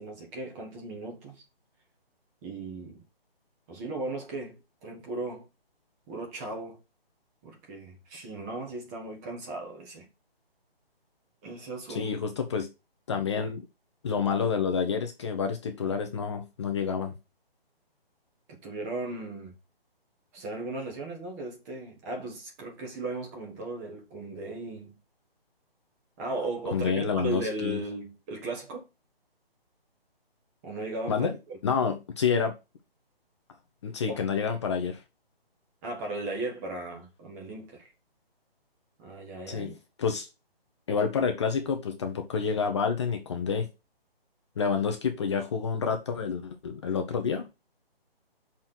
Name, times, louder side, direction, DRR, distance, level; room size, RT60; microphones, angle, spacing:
voice 1, 0.0-1.4 2.4-3.0 3.7-5.5 6.1-6.8 7.4-10.1 11.4-12.1 18.5-19.5 20.3-24.9 26.2-28.8 30.6-31.6 34.1-34.2 35.8-37.9 39.0-39.8, right 2 dB, 15° right, 1.4 m, -36 dB
voice 2, 11.9-12.7 13.1-13.6 14.0-17.1 26.7-27.8 31.1-31.3 31.6-32.5 33.8-35.0 39.5-39.7 40.0-40.3 40.9-43.7 44.6-47.5, left 6 dB, 30° left, 0.8 m, -28 dB
6.1 x 4.3 x 5.9 m
hypercardioid pair, 160°, 30 cm